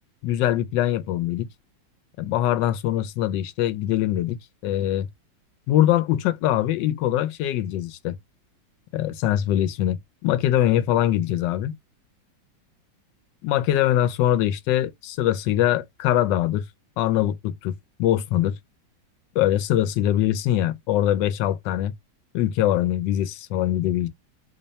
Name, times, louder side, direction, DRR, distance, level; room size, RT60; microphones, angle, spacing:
voice 1, 0.2-1.5 2.2-5.1 5.7-8.1 8.9-11.7 13.4-16.6 17.0-17.7 18.0-18.5 19.4-21.9 22.3-24.1, left 12 dB, 75° left, 1.2 m, -23 dB
3.3 x 2.2 x 3.9 m
omnidirectional pair, 2.0 m